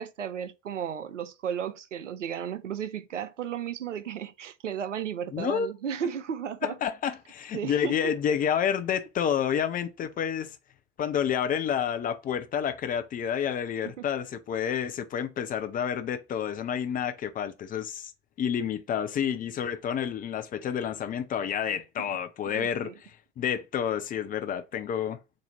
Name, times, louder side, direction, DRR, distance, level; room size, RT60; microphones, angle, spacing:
voice 1, 0.0-6.8 7.5-8.1 14.0-14.1 22.0-22.2 22.5-22.9, right 8 dB, 80° right, 0.5 m, -34 dB
voice 2, 5.3-5.7 6.6-10.6 11.0-18.1 18.4-25.2, left 8 dB, 25° left, 0.5 m, -29 dB
4.1 x 2.6 x 4.2 m
figure-of-eight pair, 70°, 36 cm